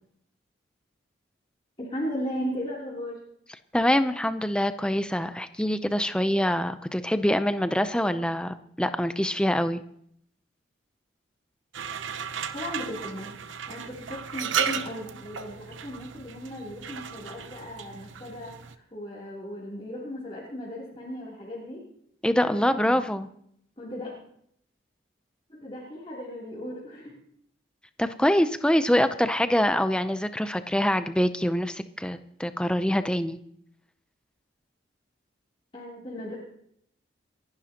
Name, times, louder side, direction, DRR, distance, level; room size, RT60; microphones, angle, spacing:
voice 1, 1.8-3.2 12.5-13.4 13.7-21.8 22.5-23.0 23.8-24.1 25.5-27.1 35.7-36.4, equal, 30° left, -7 dB, 3.2 m, -36 dB
voice 2, 3.7-9.8 22.2-23.3 28.0-33.4, equal, 5° left, 10 dB, 0.6 m, -25 dB
sound 1, 11.7-18.7, right 7 dB, 80° right, 0.8 m, -35 dB
28.5 x 11.5 x 2.9 m, 0.69 s
head